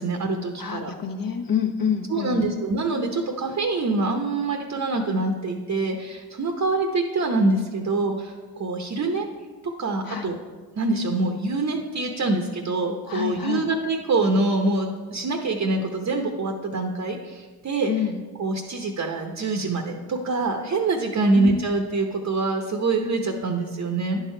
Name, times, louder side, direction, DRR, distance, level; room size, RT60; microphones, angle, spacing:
voice 1, 0.0-0.9 2.1-9.3 9.6-10.3 10.8-17.9 18.4-24.2, right 3 dB, 35° right, 4 dB, 0.9 m, -25 dB
voice 2, 0.6-2.5 10.0-10.3 13.1-13.7 17.9-18.2 21.3-21.7, left 7 dB, 45° left, 4 dB, 1.2 m, -27 dB
10.5 x 4.7 x 4.4 m, 1.4 s
cardioid pair, 75°, 46 cm